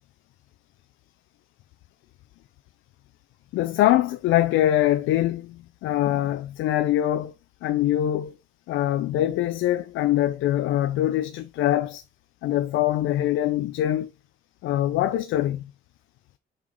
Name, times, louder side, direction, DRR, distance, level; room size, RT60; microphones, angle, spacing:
voice 1, 3.5-7.3 7.6-8.3 8.7-12.0 12.4-14.1 14.6-15.6, left 13 dB, 90° left, 0.6 m, -23 dB
5.6 x 4.8 x 3.7 m
cardioid pair, 90°, 20 cm